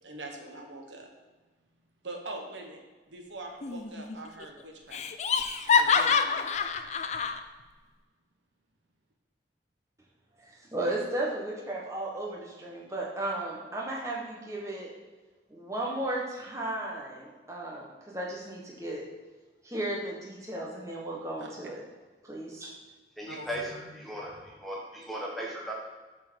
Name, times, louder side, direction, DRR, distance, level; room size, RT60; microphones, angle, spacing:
voice 1, 0.0-1.1 2.0-2.8 3.1-5.1 5.7-6.7 21.4-21.5 23.3-23.5, right 2 dB, 80° right, 2 dB, 1.2 m, -43 dB
Laughter, 3.6-4.2 4.4-4.5 4.9-7.4, left 6 dB, 35° left, 0.4 m, -26 dB
voice 2, 10.4-14.9 15.5-19.0 19.6-21.8 22.2-22.7 23.7-23.9, right 1 dB, 15° right, -3 dB, 1.3 m, -35 dB
voice 3, 23.2-25.7, equal, ahead, -4 dB, 1.2 m, -37 dB
7.3 x 4.6 x 6.3 m, 1.3 s
head